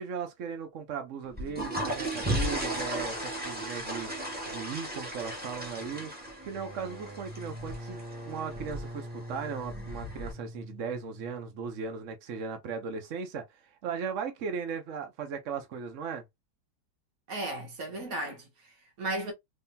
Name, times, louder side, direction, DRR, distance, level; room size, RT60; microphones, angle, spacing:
voice 1, 0.0-6.1 6.4-16.2, right 6 dB, 70° right, 0.7 m, -37 dB
sound 1, 1.2-10.3, right 1 dB, 5° right, 0.9 m, -36 dB
sound 2, 6.4-11.9, equal, 30° right, 1.8 m, -44 dB
voice 2, 17.3-19.3, right 2 dB, 50° right, 1.5 m, -35 dB
3.7 x 3.2 x 2.7 m
omnidirectional pair, 2.3 m